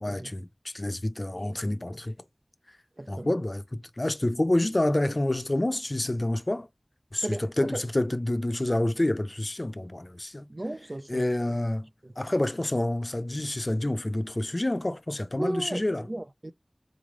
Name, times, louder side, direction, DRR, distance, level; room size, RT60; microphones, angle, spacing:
voice 1, 0.0-2.1 3.1-6.7 7.1-7.3 7.6-10.5 11.1-11.9 12.2-16.0, left 1 dB, 45° left, 0.5 m, -28 dB
voice 2, 3.0-3.4 7.2-7.8 10.5-11.6 12.0-12.4 15.3-16.5, right 1 dB, 45° right, 0.3 m, -36 dB
3.9 x 3.1 x 3.6 m
wide cardioid pair, 45°, 0 cm